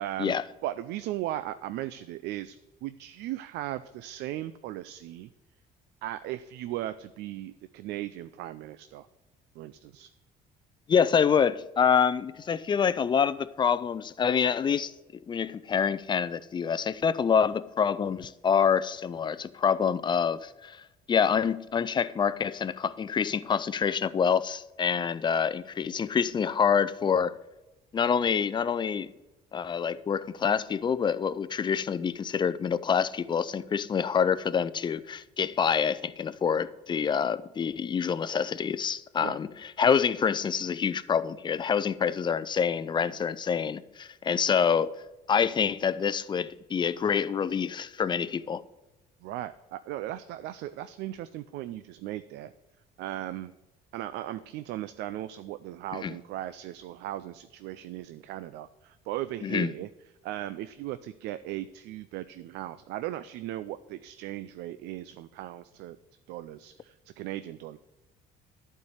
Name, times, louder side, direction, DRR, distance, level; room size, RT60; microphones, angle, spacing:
voice 1, 0.0-0.3 0.6-2.6 2.8-5.3 6.0-9.1 9.6-10.1 39.2-39.4 49.2-52.5 53.0-53.5 53.9-59.9 60.2-66.0 66.3-67.8, right 14 dB, 85° right, 0.5 m, -37 dB
voice 2, 10.9-14.9 15.3-20.8 21.1-27.4 27.9-29.1 29.5-44.9 45.3-48.6 56.0-56.1 59.4-59.7, left 7 dB, 25° left, 0.5 m, -26 dB
11.5 x 4.6 x 8.2 m
cardioid pair, 110°, 17 cm